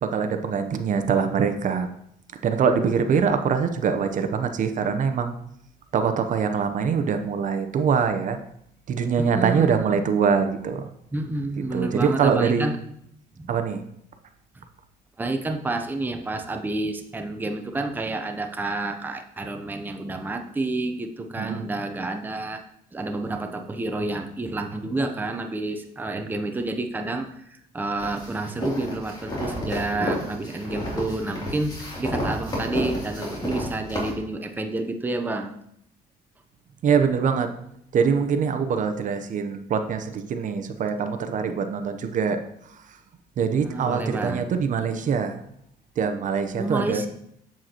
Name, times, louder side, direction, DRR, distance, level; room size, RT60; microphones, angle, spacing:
voice 1, 0.0-1.9 2.4-5.3 5.9-8.4 8.9-10.8 11.7-12.7 13.5-13.8 21.4-21.7 36.8-37.5 37.9-42.4 43.4-45.4 46.0-47.1, right 6 dB, 50° right, 8 dB, 0.7 m, -23 dB
voice 2, 9.2-10.0 11.1-12.8 13.4-13.5 14.6-14.7 15.2-22.6 22.9-35.5 43.6-44.4 46.6-47.1, right 2 dB, 10° right, 5 dB, 0.6 m, -29 dB
sound 1, 28.0-34.1, left 1 dB, 25° left, 2.8 m, -31 dB
7.7 x 7.5 x 2.9 m, 0.72 s
cardioid pair, 110°, 17 cm